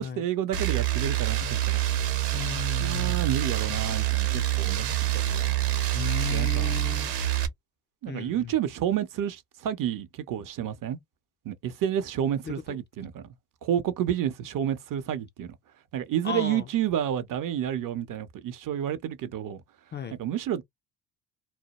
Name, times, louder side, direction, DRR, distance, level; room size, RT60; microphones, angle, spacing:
voice 1, 0.0-1.8 2.8-4.9 5.1-5.8 6.3-6.8 8.0-11.0 11.5-13.2 13.6-15.5 15.9-19.6 20.2-20.6, right 10 dB, 50° right, 0.7 m, -30 dB
sound 1, 0.5-7.5, right 13 dB, 85° right, 0.9 m, -26 dB
voice 2, 2.3-3.3 5.9-7.1 8.1-8.5 12.4-12.8 16.2-16.7 19.9-20.2, left 7 dB, 30° left, 0.4 m, -35 dB
2.2 x 2.0 x 2.9 m
supercardioid pair, 70°, 41 cm